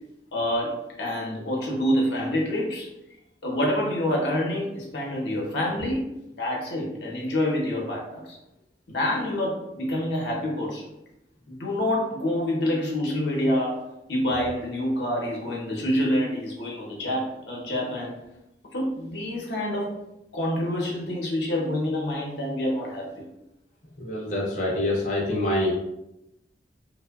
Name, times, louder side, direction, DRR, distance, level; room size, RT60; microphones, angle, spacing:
voice 1, 0.3-2.9 3.4-8.4 8.9-10.9 11.5-13.8 14.1-18.1 18.7-20.0 20.3-23.1, left 1 dB, 85° left, -2 dB, 0.7 m, -27 dB
voice 2, 24.0-25.8, left 1 dB, 45° left, -4 dB, 0.4 m, -25 dB
2.8 x 2.1 x 2.3 m, 0.88 s
head